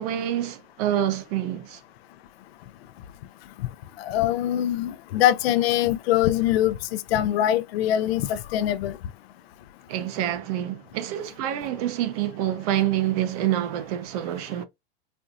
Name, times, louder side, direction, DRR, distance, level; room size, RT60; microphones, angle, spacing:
voice 1, 0.0-1.8 9.9-14.6, right 12 dB, 40° right, 0.5 m, -27 dB
voice 2, 4.0-9.0, left 12 dB, 85° left, 0.5 m, -23 dB
4.3 x 2.5 x 2.4 m
supercardioid pair, 170°, 30 cm